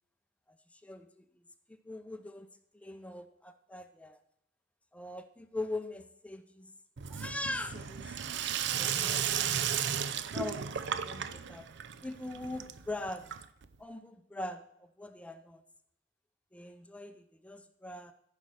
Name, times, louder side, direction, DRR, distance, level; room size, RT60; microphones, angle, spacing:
voice 1, 0.7-1.2 1.8-2.5 2.7-4.2 4.9-6.7 7.1-8.2 8.8-9.3 10.3-11.7 12.0-13.3 13.8-15.6 16.5-18.1, left 2 dB, 5° left, 9 dB, 0.6 m, -41 dB
Sink (filling or washing), 7.0-13.8, right 8 dB, 60° right, 0.6 m, -34 dB
14.0 x 5.4 x 6.3 m, 0.77 s
head